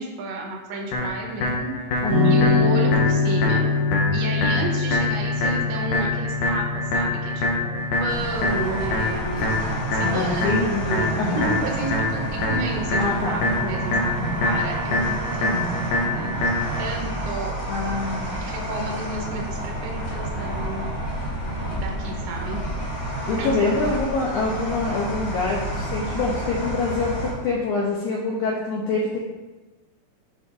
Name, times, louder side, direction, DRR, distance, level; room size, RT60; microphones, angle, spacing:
voice 1, 0.0-1.7 2.2-3.7 4.1-9.6 9.9-16.5 16.8-17.6 18.4-20.9 21.7-22.6 23.4-23.7, right 2 dB, 85° right, -1 dB, 3.2 m, -32 dB
sound 1, 0.9-16.9, left 2 dB, 70° left, 2.1 m, -26 dB
voice 2, 2.0-2.5 10.0-10.7 11.2-11.5 13.0-13.4 14.2-14.6 15.5-15.8 17.7-18.3 23.3-29.2, left 3 dB, 90° left, -3 dB, 1.7 m, -25 dB
sound 2, 2.1-10.6, left 4 dB, 60° right, 1.5 m, -25 dB
sound 3, 8.1-27.3, right 1 dB, 35° left, 1.0 m, -30 dB
9.1 x 5.2 x 2.6 m, 1.2 s
omnidirectional pair, 4.5 m